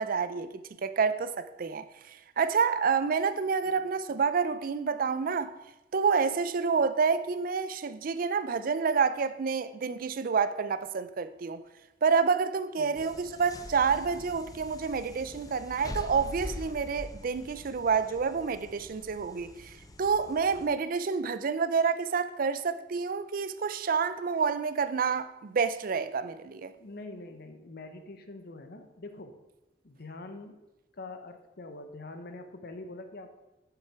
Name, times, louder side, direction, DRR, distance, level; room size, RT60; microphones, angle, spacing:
voice 1, 0.0-5.5 5.9-11.6 12.0-26.7, right 5 dB, 50° right, 0.4 m, -28 dB
voice 2, 12.8-13.3 26.8-29.4 29.8-30.6 30.9-33.3, left 2 dB, 60° left, 0.9 m, -44 dB
sound 1, 13.0-20.7, left 1 dB, 20° left, 0.6 m, -44 dB
7.6 x 7.0 x 4.7 m
head